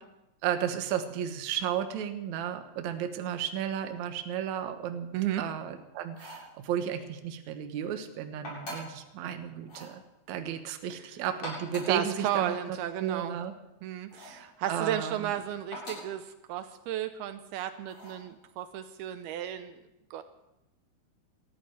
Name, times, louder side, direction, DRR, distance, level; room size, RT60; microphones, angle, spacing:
voice 1, 0.4-5.1 5.4-10.0 10.3-13.5 14.4-15.3, right 9 dB, 65° right, 7 dB, 2.0 m, -33 dB
voice 2, 5.1-5.4 10.9-11.0 11.9-13.4 13.8-19.8 20.1-20.2, right 11 dB, 80° right, 9 dB, 2.6 m, -34 dB
sound 1, 6.1-6.5 8.4-9.0 9.6-10.0 11.3-12.0 14.1-14.5 15.7-16.2 17.9-18.3, equal, 40° left, 8.9 m, -42 dB
20.5 x 14.0 x 4.8 m, 0.91 s
omnidirectional pair, 4.7 m